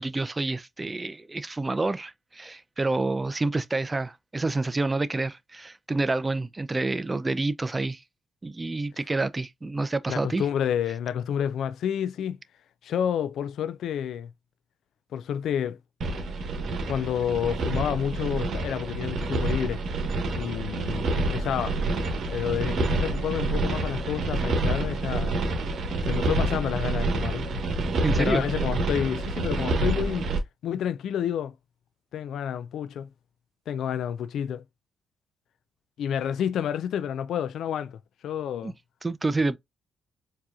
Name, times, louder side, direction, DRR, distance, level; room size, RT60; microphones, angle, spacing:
voice 1, 0.0-8.0 8.4-10.4 28.0-28.4 38.6-38.7 39.0-39.6, right 2 dB, 20° right, 0.4 m, -28 dB
voice 2, 10.1-12.4 12.8-14.3 15.1-15.8 16.9-19.8 20.3-21.8 22.3-25.4 26.0-27.6 28.2-30.3 30.6-31.5 32.1-33.1 33.7-34.6 36.0-38.7, left 9 dB, 70° left, 0.3 m, -29 dB
sound 1, 16.0-30.4, right 2 dB, 60° right, 1.1 m, -28 dB
4.6 x 2.8 x 2.4 m
cardioid pair, 90°, 0 cm